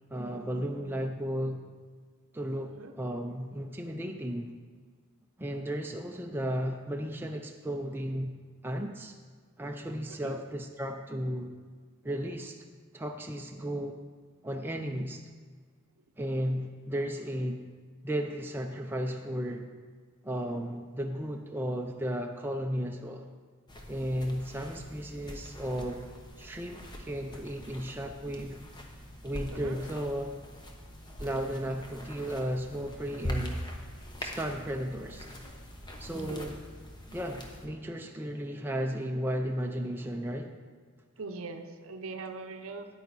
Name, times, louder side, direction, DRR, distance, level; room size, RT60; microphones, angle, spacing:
voice 1, 0.1-1.6 2.3-4.5 5.4-8.3 8.6-9.1 9.6-11.5 12.0-12.6 12.9-14.0 14.4-15.2 16.2-17.6 18.0-19.7 20.2-23.3 23.9-26.1 26.4-28.6 29.2-30.3 31.2-33.6 34.2-35.3 36.0-36.6 37.1-40.5, equal, 10° right, 2 dB, 0.4 m, -34 dB
sound 1, 23.7-37.7, equal, 20° left, 0.9 m, -43 dB
voice 2, 41.2-42.9, right 3 dB, 65° right, 6 dB, 0.7 m, -41 dB
9.4 x 9.0 x 4.1 m, 1.6 s
head